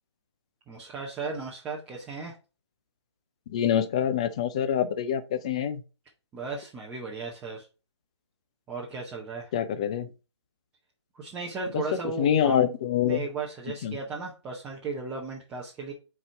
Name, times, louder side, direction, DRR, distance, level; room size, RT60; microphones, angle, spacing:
voice 1, 0.7-2.3 6.3-7.7 8.7-9.5 11.1-12.6 13.1-15.9, right 4 dB, 10° right, 0.7 m, -35 dB
voice 2, 3.5-5.8 9.5-10.1 12.2-13.2 13.8-14.0, left 9 dB, 15° left, 0.3 m, -25 dB
4.6 x 4.1 x 5.6 m
figure-of-eight pair, 145°, 15 cm